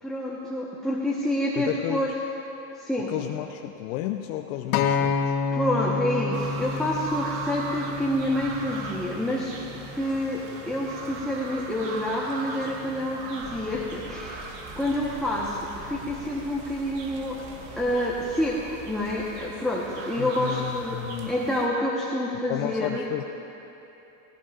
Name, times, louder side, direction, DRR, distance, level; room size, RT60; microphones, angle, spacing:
voice 1, 0.0-2.1 2.7-3.1 5.5-9.6 9.9-17.4 17.8-23.0, left 1 dB, ahead, -6 dB, 1.1 m, -28 dB
voice 2, 1.6-2.0 3.1-5.4 20.2-21.3 22.5-23.2, left 13 dB, 70° left, 5 dB, 0.7 m, -32 dB
Acoustic guitar, 4.7-9.0 9.8-9.9, left 5 dB, 90° left, 1.0 m, -28 dB
sound 1, 6.3-21.7, right 4 dB, 60° right, 1.6 m, -39 dB
sound 2, 13.4-19.4, right 1 dB, 15° right, 3.2 m, -47 dB
17.5 x 16.5 x 2.5 m, 3.0 s
supercardioid pair, 120°, 44 cm